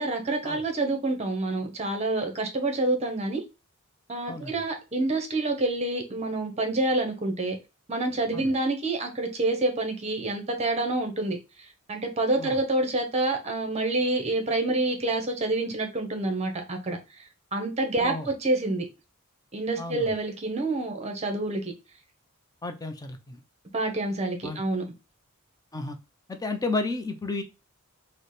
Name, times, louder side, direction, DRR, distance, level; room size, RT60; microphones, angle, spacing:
voice 1, 0.0-3.4 4.1-7.6 7.9-11.4 11.9-17.0 17.5-18.8 19.5-21.7 23.7-24.9, right 2 dB, 30° right, 0.7 m, -27 dB
voice 2, 19.8-20.2 22.6-23.4 24.4-24.6 25.7-26.0 26.3-27.4, left 3 dB, 15° left, 0.5 m, -32 dB
4.1 x 2.1 x 3.2 m
head